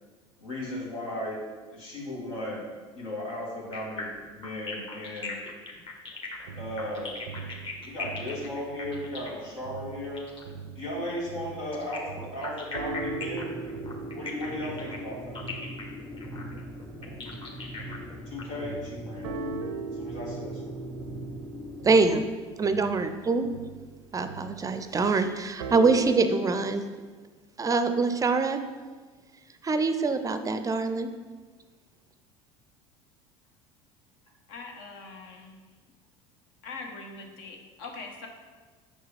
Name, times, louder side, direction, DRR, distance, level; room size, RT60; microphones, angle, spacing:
voice 1, 0.4-1.4 1.7-2.6 3.0-5.4 6.6-7.1 7.8-10.2 10.8-13.5 14.1-15.4 18.3-19.4 20.0-20.7, left 1 dB, 90° left, -5 dB, 1.8 m, -36 dB
sound 1, 3.7-10.5 11.7-18.4, left 3 dB, 35° left, 1.3 m, -39 dB
sound 2, 6.5-9.3 9.6-18.3 18.6-26.2, right 4 dB, 85° right, 0.5 m, -40 dB
sound 3, 12.9-22.2, left 1 dB, 10° left, 0.8 m, -41 dB
voice 2, 21.8-22.2 22.6-23.5 24.1-26.8 27.6-28.6 29.6-31.1, right 4 dB, 25° right, 9 dB, 0.4 m, -24 dB
voice 3, 34.5-35.6 36.6-38.3, left 3 dB, 75° left, 2 dB, 1.0 m, -42 dB
5.9 x 4.7 x 3.3 m, 1.4 s
hypercardioid pair, 80°, 15 cm